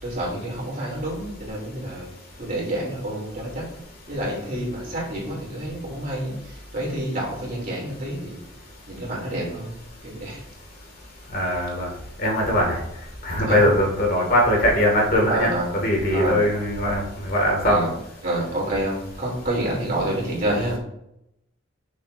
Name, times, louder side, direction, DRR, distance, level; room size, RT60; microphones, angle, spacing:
voice 1, 0.0-2.1 2.4-3.7 4.1-8.4 8.9-9.7 10.0-10.4 13.5-13.6 15.2-15.7 16.1-16.4 17.6-17.9 18.2-20.8, right 1 dB, 45° right, -3 dB, 2.8 m, -28 dB
voice 2, 11.3-11.9 12.2-12.8 13.2-15.5 15.8-17.8, equal, 50° left, 0 dB, 1.9 m, -21 dB
9.0 x 6.3 x 2.5 m, 0.80 s
head